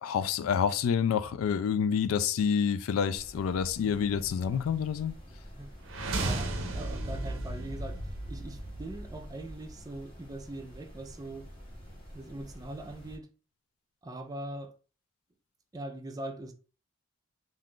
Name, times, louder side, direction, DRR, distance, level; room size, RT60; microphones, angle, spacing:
voice 1, 0.0-5.1, left 7 dB, 90° left, 0.3 m, -28 dB
sound 1, 3.2-13.2, equal, 25° left, 0.9 m, -49 dB
voice 2, 3.8-4.6 5.5-11.5 12.1-13.3 14.0-14.7 15.7-16.5, right 1 dB, 20° right, 0.3 m, -42 dB
sound 2, 5.8-9.8, right 2 dB, 70° right, 0.6 m, -35 dB
2.5 x 2.3 x 3.5 m
head